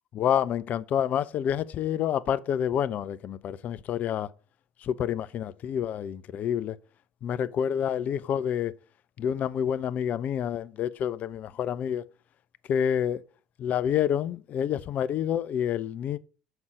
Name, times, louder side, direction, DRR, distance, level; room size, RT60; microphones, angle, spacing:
voice 1, 0.1-4.3 4.8-6.8 7.2-8.7 9.2-12.1 12.7-13.2 13.6-16.2, left 9 dB, 45° left, 0.5 m, -28 dB
6.2 x 5.4 x 5.1 m
figure-of-eight pair, 65°, 4 cm